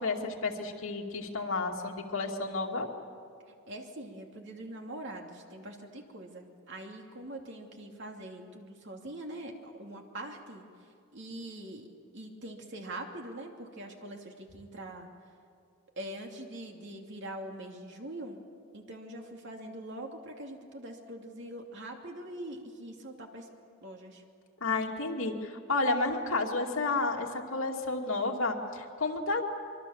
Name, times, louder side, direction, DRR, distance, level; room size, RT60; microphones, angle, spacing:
voice 1, 0.0-2.9 24.6-29.4, left 3 dB, 75° left, 1 dB, 2.5 m, -31 dB
voice 2, 3.7-11.9 12.1-15.1 16.0-18.4 18.7-23.5 23.8-24.2, right 1 dB, 60° right, 2 dB, 2.8 m, -43 dB
24.5 x 23.5 x 7.2 m, 2.3 s
head